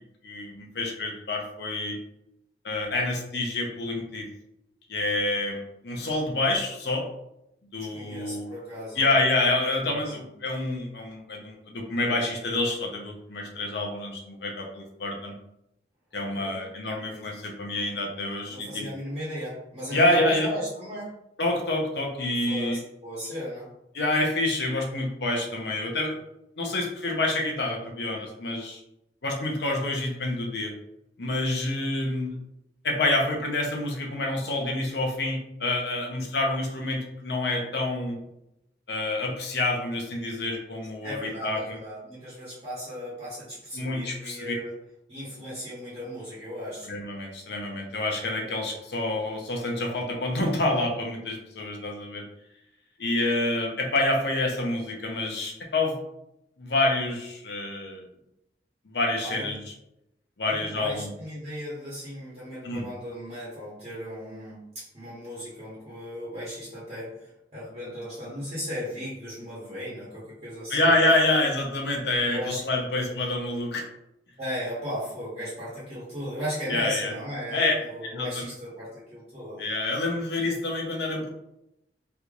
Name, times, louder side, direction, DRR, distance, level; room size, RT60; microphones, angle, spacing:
voice 1, 0.2-2.0 2.6-4.3 4.9-7.0 7.7-8.5 9.0-15.3 16.1-18.9 19.9-20.5 21.4-22.8 23.9-26.2 26.6-28.8 29.2-30.7 31.2-32.4 32.8-38.2 38.9-41.8 43.7-44.5 46.9-52.2 53.0-56.0 56.6-58.1 58.9-59.6 60.4-61.1 62.6-62.9 70.7-73.8 76.7-77.1 77.5-77.7 78.0-78.5 79.6-81.3, left 2 dB, 70° left, 1 dB, 0.7 m, -27 dB
voice 2, 7.8-9.1 9.8-10.1 16.3-16.6 17.0-17.3 18.5-21.1 22.5-23.7 41.0-44.8 45.1-46.9 59.2-59.5 60.4-71.0 72.3-72.6 72.9-73.1 74.4-79.6 80.5-80.6, equal, 35° right, -10 dB, 1.2 m, -36 dB
3.3 x 2.9 x 2.5 m, 0.84 s
head